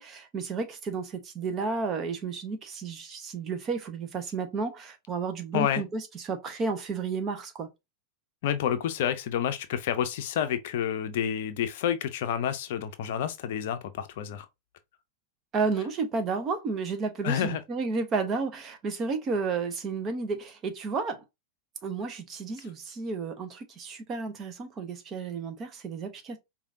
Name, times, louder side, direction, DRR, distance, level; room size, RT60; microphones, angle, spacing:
voice 1, 0.0-7.7 15.5-21.2 21.8-26.4, right 4 dB, 30° right, 1.0 m, -32 dB
voice 2, 8.4-14.5 17.2-17.6, left 9 dB, 55° left, 0.6 m, -29 dB
4.9 x 2.7 x 2.6 m
figure-of-eight pair, 90°, 0 cm